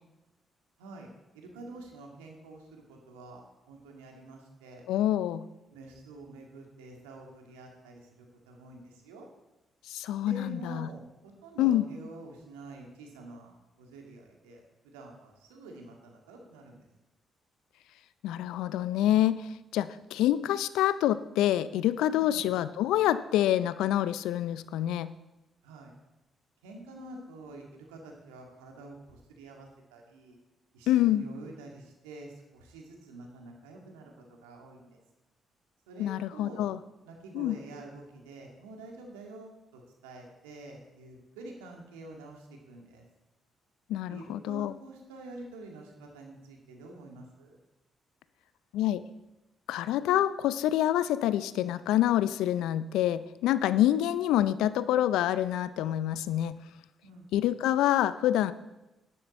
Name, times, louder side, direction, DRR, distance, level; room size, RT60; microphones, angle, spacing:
voice 1, 1.3-4.8 5.7-9.3 10.3-16.9 22.2-22.5 25.6-25.9 26.6-30.4 30.7-34.1 34.4-35.0 35.9-36.6 37.0-43.0 44.1-47.6 57.0-57.5, right 2 dB, 85° right, 1 dB, 2.1 m, -47 dB
voice 2, 4.9-5.4 9.9-10.9 11.6-11.9 18.2-25.1 30.9-31.3 36.0-36.8 37.3-37.6 43.9-44.7 48.7-49.0 49.7-56.6 57.3-58.5, left 12 dB, 75° left, 15 dB, 0.4 m, -27 dB
11.0 x 10.0 x 4.3 m, 0.99 s
hypercardioid pair, 45°, 0 cm